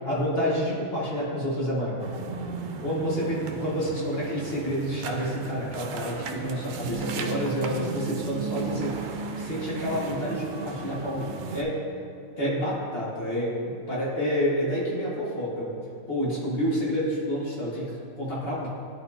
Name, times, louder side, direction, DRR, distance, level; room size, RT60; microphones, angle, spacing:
voice 1, 0.0-2.1 2.8-8.9 9.4-11.8 12.3-15.7 16.1-18.7, equal, 45° left, -7 dB, 1.4 m, -29 dB
sound 1, 2.0-11.6, right 5 dB, 70° right, 0.9 m, -34 dB
11.0 x 4.3 x 2.7 m, 2.6 s
omnidirectional pair, 1.4 m